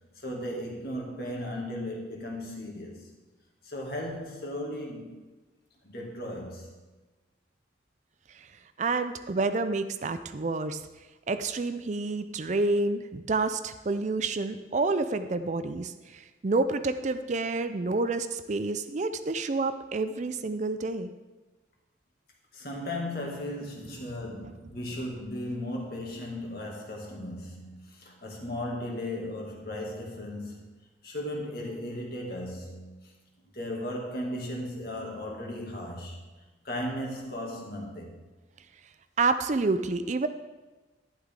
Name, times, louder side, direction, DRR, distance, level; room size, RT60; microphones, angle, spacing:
voice 1, 0.2-3.1 3.6-5.2 5.8-6.7 22.5-30.7 31.0-33.1 33.5-36.2 36.6-38.2, left 1 dB, 50° left, 2.2 m, -36 dB
voice 2, 8.8-10.8 11.3-21.1 24.4-24.5 39.2-40.3, right 3 dB, 40° right, 0.4 m, -29 dB
11.5 x 11.0 x 3.7 m
head